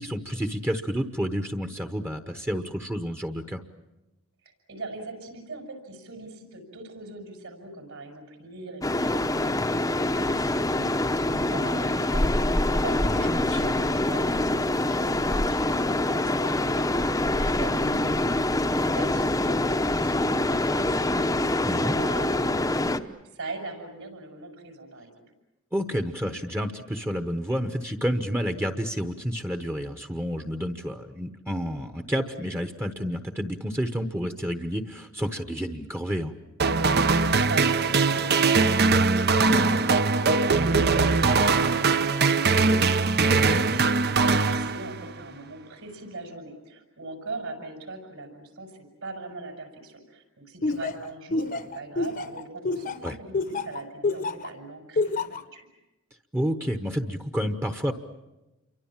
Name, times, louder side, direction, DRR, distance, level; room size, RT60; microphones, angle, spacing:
voice 1, 0.0-3.6 13.1-13.6 21.7-21.9 25.7-36.3 43.2-43.8 53.0-53.2 56.3-57.9, equal, 10° right, 7 dB, 1.0 m, -30 dB
voice 2, 4.4-18.1 18.5-25.2 37.4-55.7, right 2 dB, 70° right, 5 dB, 6.3 m, -41 dB
sound 1, 8.8-23.0, left 1 dB, 15° left, 0.8 m, -25 dB
sound 2, 36.6-45.2, right 4 dB, 50° right, 0.8 m, -21 dB
Laughter, 50.6-54.5 55.0-55.4, left 3 dB, 40° left, 1.0 m, -27 dB
28.5 x 24.0 x 7.4 m, 1.0 s
head